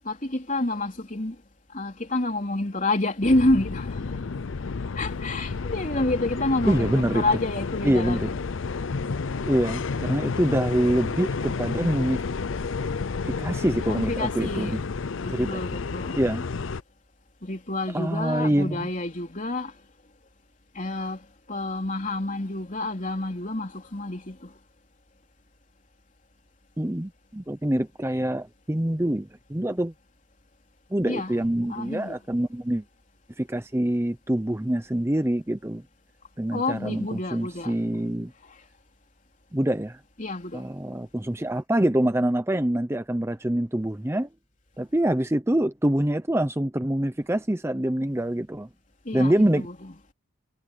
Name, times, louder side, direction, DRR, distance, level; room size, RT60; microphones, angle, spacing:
voice 1, 0.1-1.4 1.7-4.0 5.0-8.4 13.9-14.8 15.2-16.3 17.4-19.7 20.8-24.5 31.1-31.4 31.7-32.2 36.5-37.8 40.2-40.6 49.1-49.9, left 2 dB, 40° left, 3.7 m, -28 dB
sound 1, 3.2-16.8, left 4 dB, 80° left, 0.6 m, -31 dB
voice 2, 6.7-7.2 7.8-8.3 9.4-12.2 13.2-14.8 15.3-15.6 16.2-16.4 17.9-18.9 26.8-29.9 30.9-32.8 33.4-35.8 36.4-38.3 39.5-40.0 40.5-44.3 44.8-48.7 49.1-49.7, right 1 dB, 15° right, 0.7 m, -25 dB
head